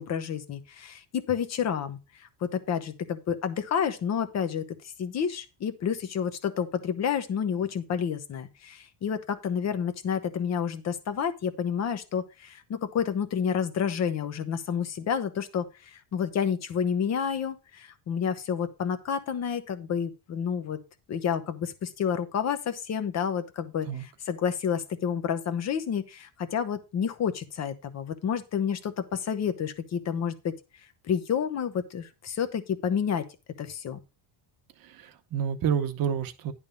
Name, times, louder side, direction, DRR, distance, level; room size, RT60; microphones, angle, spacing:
voice 1, 0.0-4.6 5.0-20.8 21.1-30.6 31.1-33.3 33.6-34.0, left 7 dB, 30° left, 0.9 m, -30 dB
voice 2, 34.8-36.5, right 7 dB, 45° right, 1.1 m, -29 dB
10.5 x 3.5 x 6.9 m
cardioid pair, 170°, 50 cm